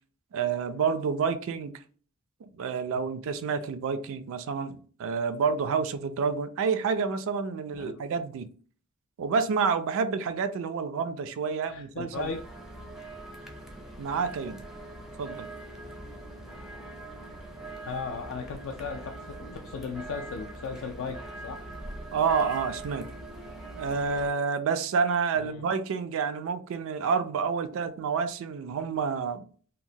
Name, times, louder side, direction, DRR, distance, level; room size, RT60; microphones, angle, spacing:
voice 1, 0.3-1.8 2.4-8.5 9.2-12.3 14.0-14.6 15.2-15.5 22.1-23.0 23.8-29.4, right 5 dB, 65° right, 0.3 m, -29 dB
voice 2, 11.6-12.4 17.8-21.6 25.3-25.7, left 5 dB, 65° left, 0.3 m, -37 dB
sound 1, 12.1-24.3, right 2 dB, ahead, 0.4 m, -42 dB
2.8 x 2.1 x 2.6 m
head